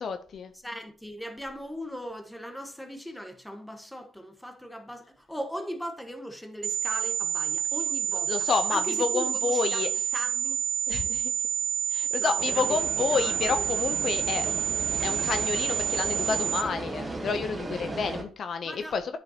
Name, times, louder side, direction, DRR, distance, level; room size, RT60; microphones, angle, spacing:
voice 1, 0.0-0.5 8.3-9.9 10.9-11.3 11.9-14.5 15.0-19.2, left 5 dB, 55° left, 0.6 m, -29 dB
voice 2, 0.6-10.6 12.2-13.6 18.6-19.0, equal, 5° left, 1.2 m, -39 dB
sound 1, 6.6-16.6, right 8 dB, 65° right, 0.5 m, -28 dB
sound 2, 12.4-18.2, right 2 dB, 20° right, 1.2 m, -36 dB
10.0 x 5.2 x 2.8 m
cardioid pair, 90°, 0 cm